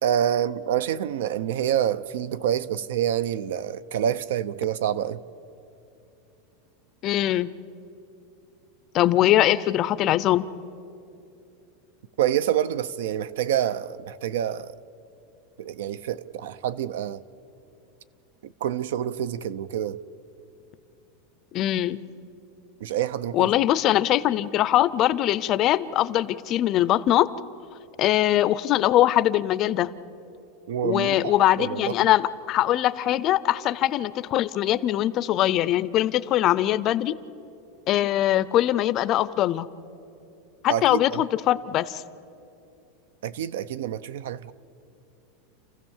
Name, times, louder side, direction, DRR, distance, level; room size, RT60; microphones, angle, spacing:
voice 1, 0.0-5.2 12.2-14.7 15.6-17.2 18.4-20.0 22.8-23.5 30.7-32.1 40.7-41.2 43.2-44.5, right 10 dB, 80° right, 0.7 m, -27 dB
voice 2, 7.0-7.5 8.9-10.4 21.5-22.0 23.3-27.3 28.0-29.9 30.8-37.1 37.9-39.7 40.6-42.0, left 13 dB, 30° left, 0.5 m, -22 dB
29.5 x 15.0 x 7.3 m
supercardioid pair, 175°, 0 cm